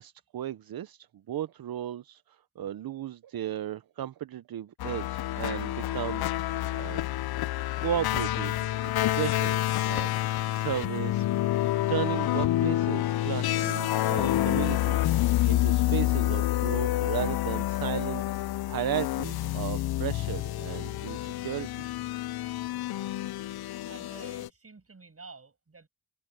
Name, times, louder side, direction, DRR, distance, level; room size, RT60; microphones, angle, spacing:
voice 1, 0.0-7.0 7.8-11.3 11.9-21.9, right 11 dB, 70° right, 0.8 m, -35 dB
sound 1, 4.8-24.5, left 15 dB, 80° left, 0.6 m, -28 dB
voice 2, 23.8-25.9, right 4 dB, 40° right, 7.3 m, -49 dB
cardioid pair, 60°, 37 cm